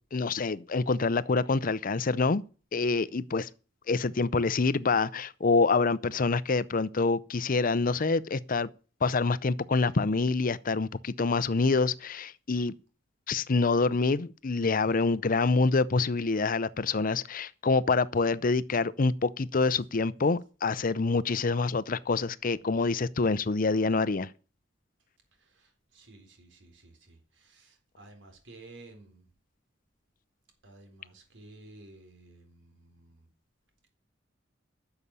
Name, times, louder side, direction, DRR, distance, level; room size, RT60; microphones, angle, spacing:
voice 1, 0.1-2.4 2.7-3.5 3.9-8.7 9.0-12.7 13.3-24.3, left 4 dB, 45° left, 0.6 m, -26 dB
voice 2, 25.3-29.3 30.6-33.3, right 2 dB, 70° right, 4.0 m, -53 dB
11.0 x 6.9 x 8.7 m
head